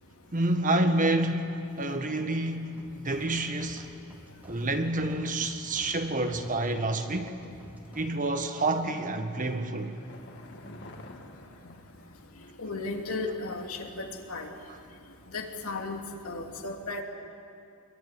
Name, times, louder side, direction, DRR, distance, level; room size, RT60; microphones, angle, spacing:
voice 1, 0.3-3.9 4.4-7.4 7.9-10.0 14.7-14.8, right 2 dB, 35° right, 1.6 m, -28 dB
sound 1, 2.8-8.1, equal, 10° right, 2.2 m, -52 dB
sound 2, 9.0-12.7 12.9-13.0, left 1 dB, 55° left, 2.5 m, -50 dB
voice 2, 12.6-14.5 15.3-17.0, left 3 dB, 75° left, 2.9 m, -35 dB
25.0 x 22.5 x 9.6 m
head